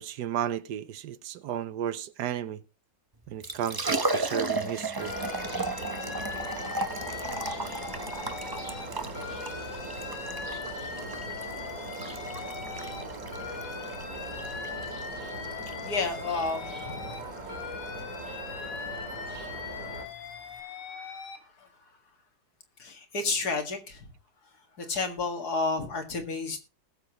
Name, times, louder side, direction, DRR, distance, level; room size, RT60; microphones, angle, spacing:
voice 1, 0.0-2.6 3.3-5.1, right 10 dB, 75° right, 1.3 m, -33 dB
Liquid, 3.2-20.6, right 2 dB, 25° right, 0.5 m, -36 dB
Alarm, 5.0-8.9 9.1-13.0 13.3-17.2 17.5-21.4, left 6 dB, 85° left, 2.1 m, -40 dB
sound 1, 5.0-20.1, right 2 dB, 55° right, 3.2 m, -40 dB
voice 2, 15.8-17.2 18.0-21.7 22.8-24.1 24.8-26.6, left 3 dB, 65° left, 2.4 m, -33 dB
20.0 x 7.2 x 3.0 m
omnidirectional pair, 1.8 m